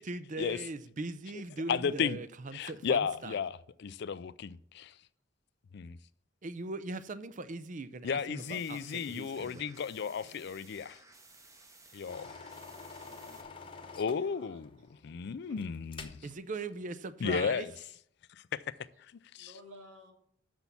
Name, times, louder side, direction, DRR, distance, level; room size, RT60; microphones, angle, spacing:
voice 1, 0.0-3.4 6.4-9.7 16.2-17.7, right 3 dB, 40° right, 0.5 m, -40 dB
voice 2, 1.7-2.2 2.5-4.9 5.7-6.0 8.0-11.0 11.9-12.4 14.0-14.7 15.0-16.1 17.2-17.7 18.5-18.6 19.3-19.5, left 6 dB, 55° left, 0.4 m, -33 dB
sound 1, 8.3-13.4, right 3 dB, 15° right, 0.9 m, -57 dB
voice 3, 10.0-10.3 13.0-13.4 13.8-14.6 15.5-15.8 16.3-16.4 18.9-19.0 19.4-20.1, equal, 75° right, 2.7 m, -56 dB
sound 2, 12.1-16.3 16.6-16.8, left 4 dB, 25° left, 0.8 m, -48 dB
6.8 x 6.2 x 7.1 m
head